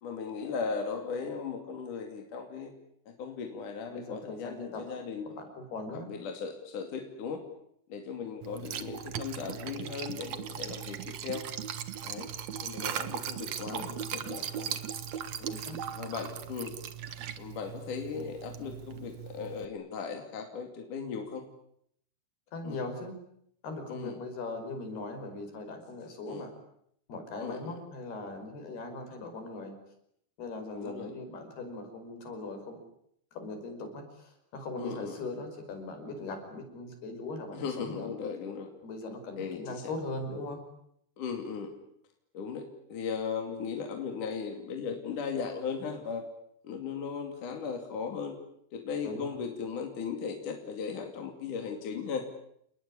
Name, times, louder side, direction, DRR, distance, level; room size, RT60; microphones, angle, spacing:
voice 1, 0.0-2.7 3.1-5.4 6.1-7.4 7.9-11.5 12.0-12.3 12.6-14.8 15.4-15.6 15.9-16.8 17.4-21.4 22.6-22.8 23.9-24.2 26.3-26.5 27.4-27.8 30.7-31.1 34.8-35.2 37.5-38.7 39.4-39.8 41.2-41.7 42.3-46.2 46.6-48.4 48.7-52.3, left 6 dB, 55° left, 4 dB, 3.9 m, -37 dB
voice 2, 3.9-4.8 5.6-6.1 13.7-14.0 15.5-15.8 22.5-23.2 23.6-26.5 27.1-29.8 30.4-32.8 33.3-38.1 38.8-40.6 49.0-49.3, left 2 dB, 70° left, 6 dB, 7.2 m, -40 dB
Liquid, 8.4-19.7, right 9 dB, 55° right, 2.1 m, -38 dB
29.0 x 20.5 x 9.9 m, 0.72 s
omnidirectional pair, 4.7 m